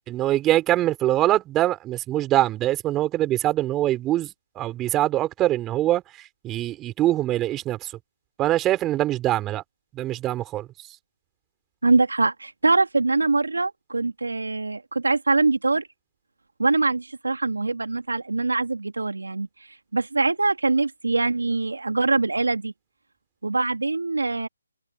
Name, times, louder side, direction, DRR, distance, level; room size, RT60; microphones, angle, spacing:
voice 1, 0.1-4.3 4.5-6.0 6.4-7.9 8.4-9.6 9.9-10.7, right 14 dB, 15° right, 4.7 m, -23 dB
voice 2, 11.8-15.9 16.6-22.7 23.4-24.5, right 3 dB, 90° right, 2.6 m, -23 dB
figure-of-eight pair, 155°, 0 cm